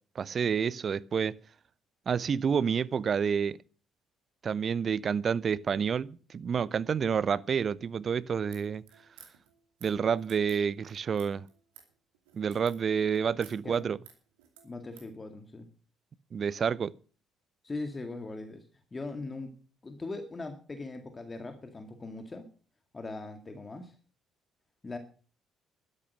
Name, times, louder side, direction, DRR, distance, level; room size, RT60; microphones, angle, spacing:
voice 1, 0.2-1.4 2.1-3.6 4.4-8.8 9.8-11.4 12.3-14.0 16.3-16.9, right 6 dB, 40° right, 0.6 m, -29 dB
sound 1, 8.5-15.1, right 8 dB, 70° right, 2.5 m, -56 dB
voice 2, 14.6-15.7 17.6-18.6 18.9-19.5 19.8-22.5 22.9-23.9 24.8-25.0, left 3 dB, 25° left, 2.1 m, -40 dB
12.5 x 11.0 x 6.4 m
figure-of-eight pair, 50°, 0 cm